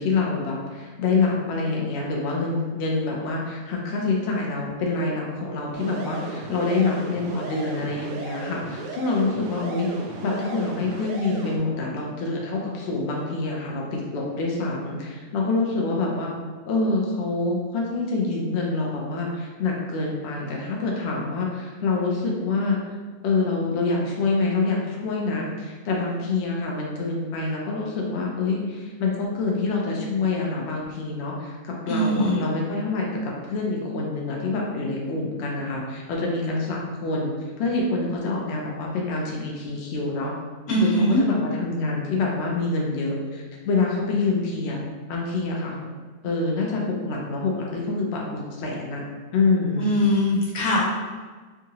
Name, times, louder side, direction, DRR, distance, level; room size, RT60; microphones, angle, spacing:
voice 1, 0.0-9.9 10.2-16.3 16.6-22.8 23.2-37.3 37.6-40.3 40.7-44.8 45.1-45.7 46.2-49.0 49.3-49.9, left 3 dB, 60° left, -2 dB, 0.8 m, -26 dB
sound 1, 5.7-11.6, right 4 dB, 70° right, 0.8 m, -36 dB
voice 2, 31.9-32.4 40.7-41.2 49.8-50.8, equal, 90° left, -6 dB, 1.5 m, -21 dB
3.6 x 2.8 x 2.8 m, 1.4 s
omnidirectional pair, 1.5 m